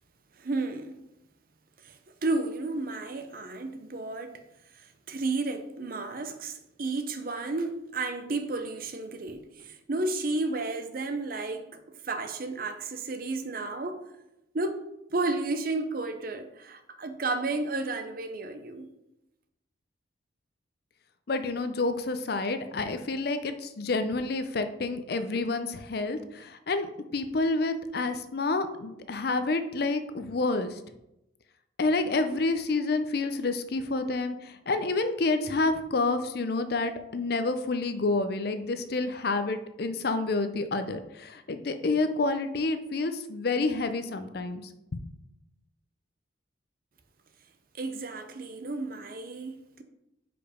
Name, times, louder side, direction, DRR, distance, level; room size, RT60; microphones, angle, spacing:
voice 1, 0.4-1.0 1.8-4.4 4.7-14.0 14.5-14.8 15.1-18.9 47.8-49.8, right 3 dB, 45° right, 0.6 m, -32 dB
voice 2, 21.3-30.8 31.8-44.6 44.9-45.1, left 3 dB, 55° left, 0.5 m, -29 dB
5.0 x 5.0 x 5.0 m
head